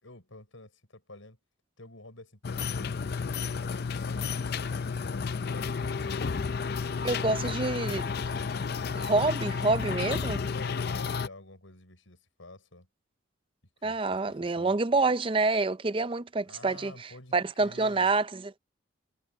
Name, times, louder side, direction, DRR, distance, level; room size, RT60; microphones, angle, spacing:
voice 1, 0.0-1.4 1.8-4.4 4.7-7.6 10.5-12.9 13.8-14.7 16.4-18.1, left 2 dB, 80° left, 5.8 m, -50 dB
sound 1, 2.4-11.3, left 5 dB, 50° left, 0.5 m, -32 dB
voice 2, 7.0-8.1 9.0-10.4 13.8-18.6, right 3 dB, 25° right, 0.5 m, -27 dB
head